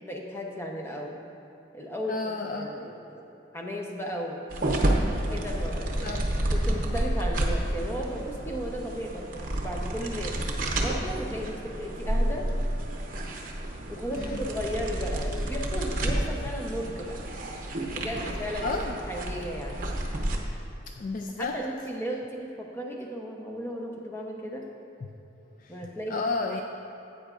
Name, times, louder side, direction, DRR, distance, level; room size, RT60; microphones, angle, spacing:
voice 1, 0.0-1.2 1.7-2.2 2.6-3.2 3.5-4.4 5.3-6.2 6.5-10.3 10.8-12.5 13.9-17.2 17.9-18.7 19.1-19.8 21.4-24.7 25.7-26.2, equal, 15° left, 0 dB, 0.8 m, -35 dB
voice 2, 2.1-2.8 6.0-6.2 14.2-14.4 18.6-19.0 20.9-21.6 25.0-25.1 25.6-25.8 26.1-26.6, left 3 dB, 45° left, 3 dB, 0.4 m, -32 dB
sound 1, 4.5-20.4, right 1 dB, 45° right, 0.9 m, -30 dB
13.0 x 8.7 x 2.5 m, 2.9 s
head